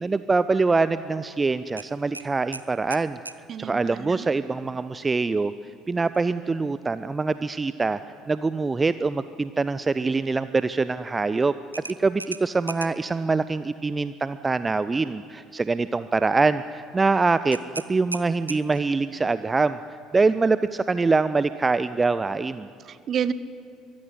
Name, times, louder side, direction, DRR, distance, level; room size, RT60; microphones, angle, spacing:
voice 1, 0.0-3.2 3.6-5.5 5.9-8.0 8.3-11.5 12.0-17.6 17.9-19.8 20.1-22.7, right 3 dB, 20° right, 14 dB, 0.5 m, -24 dB
sound 1, 1.8-3.4 6.1-6.3 6.7-6.8 11.7-13.1 17.5-19.0, right 3 dB, 85° right, 0.5 m, -38 dB
voice 2, 3.5-4.3 22.9-23.3, right 8 dB, 40° right, 15 dB, 0.9 m, -29 dB
23.0 x 15.0 x 9.8 m, 2.3 s
figure-of-eight pair, 55°, 0 cm